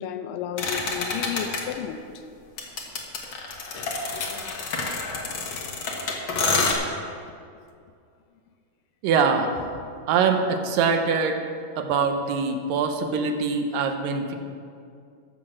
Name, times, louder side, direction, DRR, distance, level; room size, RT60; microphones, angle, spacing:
voice 1, 0.0-2.1, left 9 dB, 80° left, 2.3 m, -32 dB
sound 1, 0.6-1.6 2.6-6.7, left 4 dB, 60° left, 1.4 m, -28 dB
voice 2, 9.0-9.5 10.1-11.4 11.8-14.4, right 5 dB, 80° right, 2.4 m, -23 dB
14.0 x 6.0 x 6.3 m
omnidirectional pair, 4.0 m